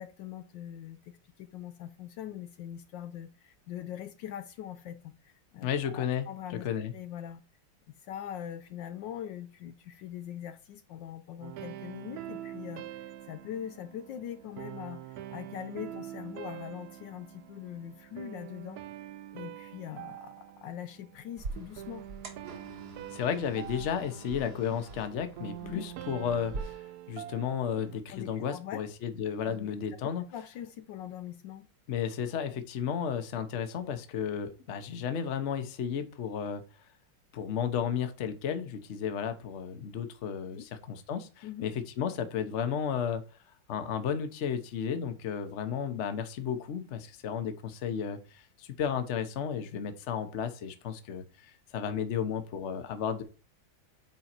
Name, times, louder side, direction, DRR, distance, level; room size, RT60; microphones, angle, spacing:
voice 1, 0.0-6.7 6.9-7.4 8.0-18.8 19.3-22.1 25.6-25.8 28.1-28.8 29.4-29.7 30.3-31.7 40.5-40.7 41.4-41.7, left 10 dB, 75° left, 1.2 m, -42 dB
voice 2, 5.6-6.2 6.6-6.9 23.1-30.2 31.9-36.6 37.3-43.2 43.7-53.2, left 8 dB, 50° left, 1.0 m, -33 dB
sound 1, 11.4-28.0, right 12 dB, 80° right, 0.8 m, -45 dB
sound 2, 21.4-26.6, right 3 dB, 55° right, 1.9 m, -44 dB
9.0 x 3.8 x 4.4 m
omnidirectional pair, 2.2 m